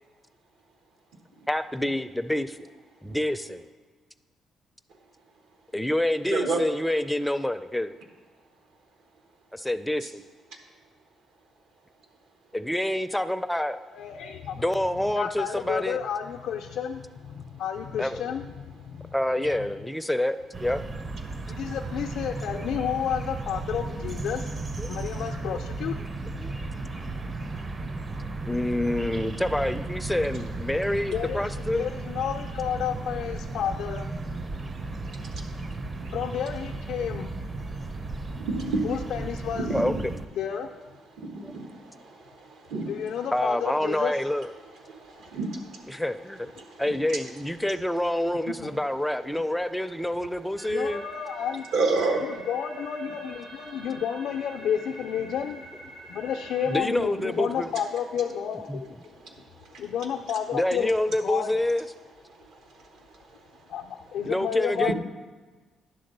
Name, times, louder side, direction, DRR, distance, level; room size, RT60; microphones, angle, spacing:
voice 1, 1.5-2.6 3.0-3.7 5.7-8.0 9.5-10.2 12.5-13.8 14.5-16.0 18.0-18.3 19.1-20.8 23.0-23.2 24.8-24.9 25.5-25.6 26.4-26.5 28.4-31.8 39.7-39.9 41.4-41.5 43.3-44.5 45.9-46.5 46.8-51.0 56.7-57.7 58.7-58.8 60.5-61.8 64.2-64.9, left 1 dB, 5° left, 10 dB, 0.4 m, -27 dB
voice 2, 6.3-6.6 10.0-10.1 38.4-38.8 39.5-40.0 41.2-41.7 42.7-42.9 45.2-45.6 46.8-47.2 51.7-52.2, right 3 dB, 80° right, 3 dB, 1.3 m, -27 dB
voice 3, 13.9-14.6 15.1-19.1 21.5-24.5 24.8-26.7 31.1-34.2 36.1-37.3 38.8-39.7 40.3-40.7 42.8-44.2 48.5-48.7 50.7-51.7 52.2-55.6 56.1-59.0 59.8-60.9 61.2-61.5 63.7-64.9, left 8 dB, 80° left, 1 dB, 0.4 m, -31 dB
sound 1, 20.5-40.3, right 3 dB, 35° right, 0.6 m, -35 dB
sound 2, 50.6-56.8, right 2 dB, 60° right, 3.0 m, -46 dB
10.5 x 3.8 x 6.6 m, 1.4 s
cardioid pair, 90°, 0 cm